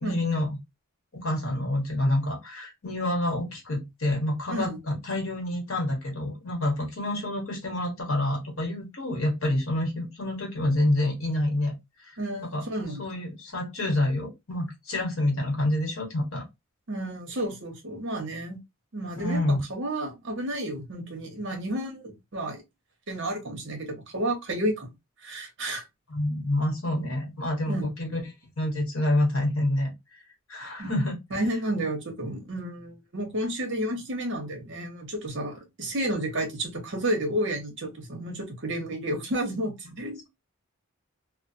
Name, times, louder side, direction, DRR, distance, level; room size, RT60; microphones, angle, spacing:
voice 1, 0.0-0.6 1.1-11.7 12.0-12.1 12.4-12.6 13.0-16.4 19.2-19.6 26.1-28.2 28.6-29.9 30.5-31.2, left 1 dB, 65° left, 1.2 m, -27 dB
voice 2, 12.2-13.0 16.9-18.6 18.9-22.6 23.1-24.9 25.2-25.8 27.7-27.9 30.8-30.9 31.3-40.2, right 1 dB, 60° right, 0.9 m, -31 dB
2.4 x 2.3 x 2.6 m
head